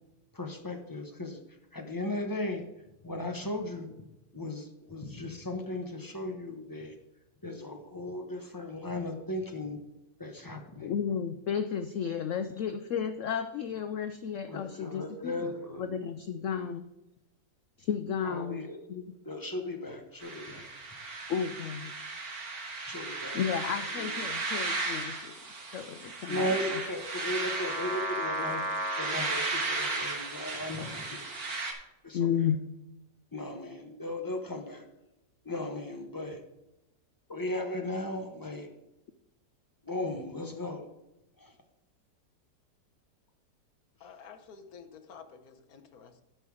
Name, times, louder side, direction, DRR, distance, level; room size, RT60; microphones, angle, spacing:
voice 1, 0.3-1.4 1.7-2.6 3.0-3.9 4.3-6.9 7.4-9.8 10.2-11.0 14.5-15.9 18.2-18.8 19.2-20.7 22.8-23.4 23.7-24.1 26.3-28.7 29.0-31.3 32.0-32.3 33.3-34.9 35.4-36.4 37.3-38.7 39.8-40.8 41.4-41.5, left 1 dB, 15° left, 4 dB, 0.7 m, -36 dB
voice 2, 10.8-15.5 15.8-16.9 17.8-19.0 21.3-21.9 23.3-26.8 32.1-32.6, left 7 dB, 75° left, 9 dB, 0.7 m, -33 dB
sound 1, 20.2-31.7, right 2 dB, 55° right, 2.0 m, -35 dB
voice 3, 44.0-46.2, left 6 dB, 60° left, 8 dB, 1.4 m, -50 dB
12.5 x 5.6 x 4.8 m, 0.93 s
omnidirectional pair, 1.9 m